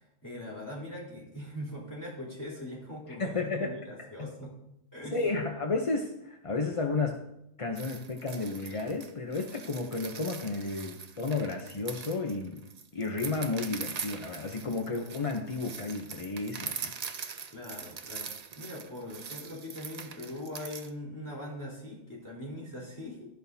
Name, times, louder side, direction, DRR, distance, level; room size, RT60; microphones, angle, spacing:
voice 1, 0.0-4.6 4.9-5.2 17.5-23.3, left 1 dB, 15° left, -5 dB, 3.7 m, -41 dB
voice 2, 3.2-3.7 4.2-4.3 5.1-7.2 7.6-12.6 12.9-16.9, left 3 dB, 35° left, 3 dB, 0.6 m, -32 dB
sound 1, 7.8-20.9, right 6 dB, 55° right, 0.4 m, -42 dB
12.5 x 11.0 x 2.7 m, 0.82 s
omnidirectional pair, 1.5 m